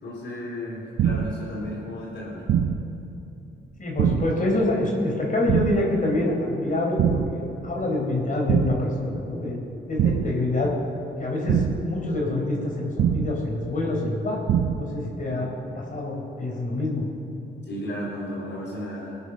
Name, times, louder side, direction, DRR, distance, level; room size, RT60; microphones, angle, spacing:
voice 1, 0.0-2.4 15.3-15.5 17.7-19.1, equal, 70° left, -8 dB, 4.1 m, -34 dB
sound 1, 1.0-1.5 2.5-3.0 4.0-4.5 5.5-6.0 7.0-7.5 8.5-9.0 10.0-10.5 11.5-12.0 13.0-13.5 14.5-15.0, right 8 dB, 75° right, 0.7 m, -23 dB
voice 2, 3.8-9.6 9.9-10.7 11.2-14.4 14.8-15.5 15.8-17.0, left 2 dB, 45° left, -1 dB, 4.1 m, -26 dB
20.5 x 8.3 x 6.5 m, 2.9 s
supercardioid pair, 60°, 19 cm